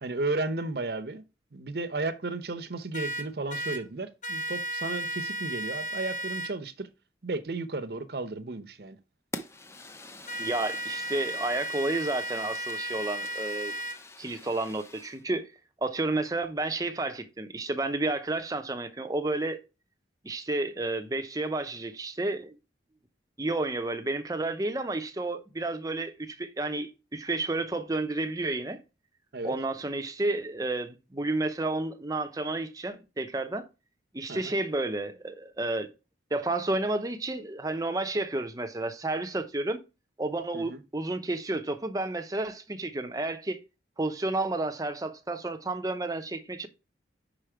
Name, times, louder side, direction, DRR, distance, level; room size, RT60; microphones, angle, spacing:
voice 1, 0.0-1.2 1.5-6.9 7.2-9.0 29.3-29.5 34.3-34.5 40.5-40.8, right 2 dB, 60° right, 0.8 m, -34 dB
sound 1, 2.9-3.8 4.2-6.5 10.3-14.0, right 1 dB, 45° left, 1.1 m, -34 dB
Fire, 9.3-15.2, left 2 dB, 15° left, 0.5 m, -45 dB
voice 2, 10.4-13.7 14.2-15.5 15.8-19.6 20.2-22.6 23.4-28.8 29.4-33.7 34.1-35.9 36.3-39.8 40.2-43.6 44.0-46.7, right 2 dB, 20° right, 0.7 m, -31 dB
5.6 x 5.0 x 4.5 m
head